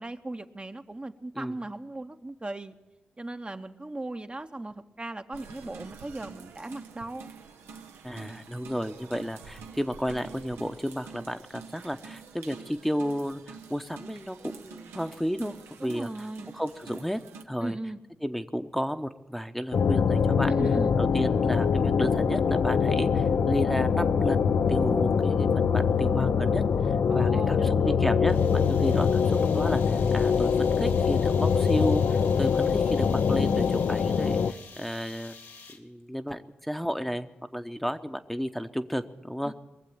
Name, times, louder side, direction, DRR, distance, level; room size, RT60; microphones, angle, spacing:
voice 1, 0.0-2.7 3.2-7.3 15.8-16.5 17.6-18.0 20.5-20.9 27.1-28.3 39.4-39.5, right 2 dB, 25° right, 6 dB, 0.9 m, -37 dB
sound 1, 5.3-17.4, right 5 dB, 90° right, 0.9 m, -47 dB
voice 2, 8.0-16.3 16.5-17.2 17.5-17.8 18.2-20.5 21.0-24.4 24.7-35.3 35.8-39.5, equal, 5° left, 8 dB, 0.9 m, -32 dB
sound 2, 19.7-34.5, left 6 dB, 70° left, 0.6 m, -24 dB
sound 3, 28.3-36.0, left 4 dB, 85° left, 1.5 m, -49 dB
21.5 x 7.5 x 8.9 m, 1.2 s
supercardioid pair, 45°, 4 cm